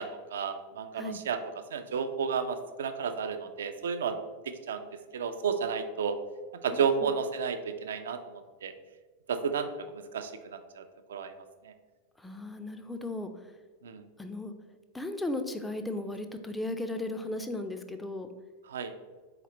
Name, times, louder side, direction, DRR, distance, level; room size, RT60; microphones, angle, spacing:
voice 1, 0.0-1.4 1.7-4.2 4.5-4.8 5.1-6.2 6.6-8.7 9.3-10.8 11.1-11.3 11.6-11.7 13.8-14.0 18.7-18.9, right 6 dB, 65° right, 9 dB, 0.4 m, -32 dB
voice 2, 6.7-7.1 12.2-13.3 14.2-14.5 14.9-18.3, left 2 dB, 5° left, 7 dB, 0.4 m, -36 dB
4.2 x 2.9 x 3.9 m, 1.3 s
figure-of-eight pair, 90°, 0 cm